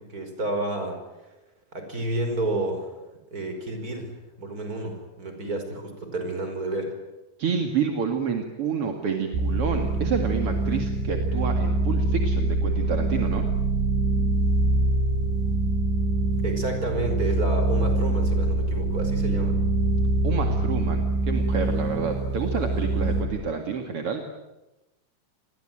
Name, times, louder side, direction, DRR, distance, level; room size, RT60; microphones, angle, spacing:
voice 1, 0.0-1.3 1.7-3.0 3.3-7.0 16.4-19.6, right 2 dB, 20° right, 5 dB, 5.1 m, -30 dB
voice 2, 7.4-13.5 20.2-24.2, right 6 dB, 45° right, 4 dB, 2.1 m, -29 dB
sound 1, 9.3-23.2, right 2 dB, 85° right, 5.4 m, -24 dB
28.0 x 21.5 x 9.1 m, 1.0 s
omnidirectional pair, 5.0 m